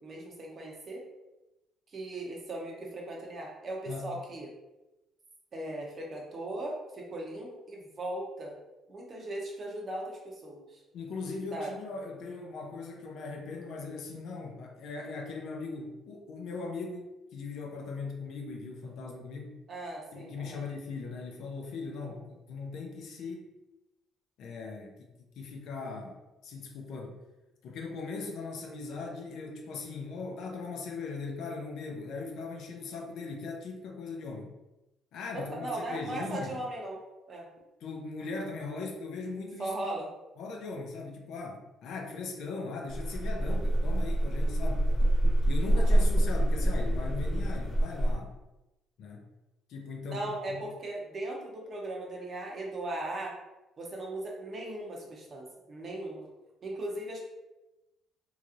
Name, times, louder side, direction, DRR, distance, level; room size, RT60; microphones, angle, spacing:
voice 1, 0.0-1.0 1.9-4.5 5.5-8.6 8.9-10.8 11.5-11.8 19.7-20.6 22.0-22.2 35.3-37.0 37.3-37.5 39.6-40.1 44.4-44.5 45.7-46.0 50.1-53.3 53.8-56.3 56.6-57.2, right 1 dB, 40° right, -1 dB, 0.8 m, -38 dB
voice 2, 3.9-4.2 10.9-19.5 20.1-22.2 22.5-23.5 24.4-27.2 27.6-34.5 35.1-36.6 37.8-39.9 40.4-44.9 45.5-48.3 49.0-49.3 49.7-50.6, left 4 dB, 70° left, 1 dB, 0.6 m, -39 dB
sound 1, 42.9-48.1, right 1 dB, 25° left, 1.3 m, -26 dB
3.1 x 2.8 x 2.5 m, 1.0 s
cardioid pair, 115°, 0 cm